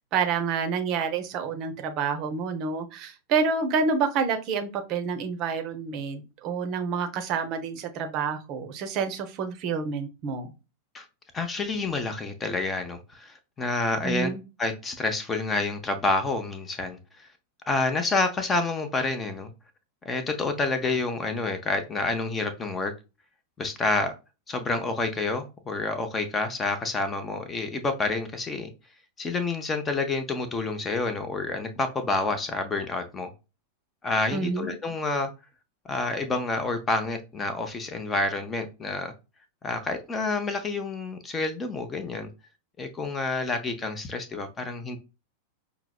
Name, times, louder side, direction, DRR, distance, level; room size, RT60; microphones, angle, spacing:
voice 1, 0.1-10.5 14.0-14.4 34.3-34.7, right 5 dB, 40° right, 0.6 m, -28 dB
voice 2, 11.3-14.3 14.6-17.3 17.7-19.5 20.0-22.9 23.6-24.1 24.5-28.7 29.2-33.3 34.0-35.3 35.9-39.1 39.6-42.3 42.8-45.0, left 3 dB, 20° left, 0.6 m, -28 dB
5.7 x 2.0 x 2.3 m
figure-of-eight pair, 90°, 0 cm